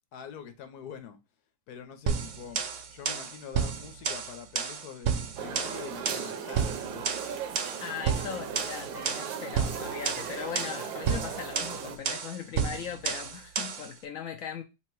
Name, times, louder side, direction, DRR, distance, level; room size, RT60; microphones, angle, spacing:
voice 1, 0.1-1.2 1.7-2.6 2.9-7.1, left 8 dB, 65° left, 1.2 m, -44 dB
sound 1, 2.1-13.9, right 6 dB, 70° right, 0.7 m, -31 dB
sound 2, 5.4-12.0, right 7 dB, 90° right, 1.5 m, -38 dB
voice 2, 7.8-14.6, left 7 dB, 90° left, 0.7 m, -39 dB
3.9 x 2.9 x 4.6 m
omnidirectional pair, 2.0 m